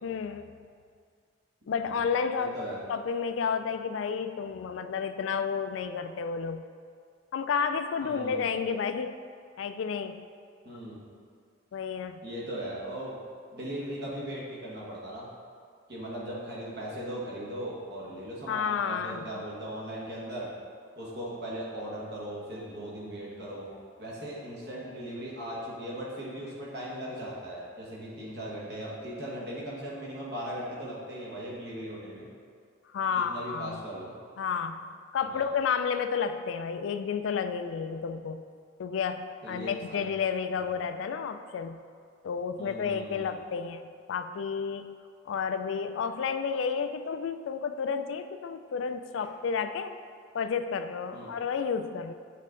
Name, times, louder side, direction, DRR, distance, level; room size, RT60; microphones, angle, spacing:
voice 1, 0.0-0.6 1.7-2.6 2.9-6.6 7.3-9.2 9.6-10.3 11.7-12.2 18.5-19.2 32.9-33.8 34.4-34.8 35.1-38.4 38.8-41.8 42.2-43.8 44.1-45.0 45.3-49.9 50.3-52.1, left 6 dB, 70° left, 9 dB, 0.3 m, -31 dB
voice 2, 2.3-2.8 8.0-8.5 10.6-11.0 12.2-13.2 13.5-15.3 15.9-20.5 20.9-23.7 24.0-32.3 33.1-34.1 35.2-35.5 39.4-40.1 40.5-40.7 42.6-43.4 51.1-51.3, right 1 dB, 55° right, -5 dB, 1.3 m, -38 dB
7.5 x 3.6 x 3.8 m, 2.1 s
head